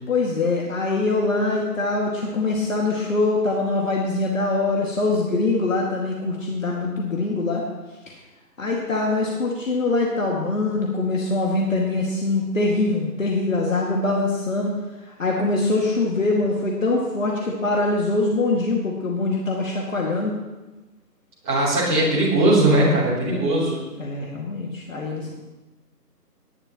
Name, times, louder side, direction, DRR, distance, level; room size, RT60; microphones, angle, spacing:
voice 1, 0.1-7.6 8.6-14.7 15.2-20.3 23.3-23.4 24.0-25.3, left 2 dB, 50° left, -2 dB, 2.2 m, -23 dB
voice 2, 21.4-23.8, right 1 dB, 15° right, -7 dB, 3.3 m, -19 dB
18.5 x 11.0 x 3.0 m, 1.1 s
figure-of-eight pair, 155°, 49 cm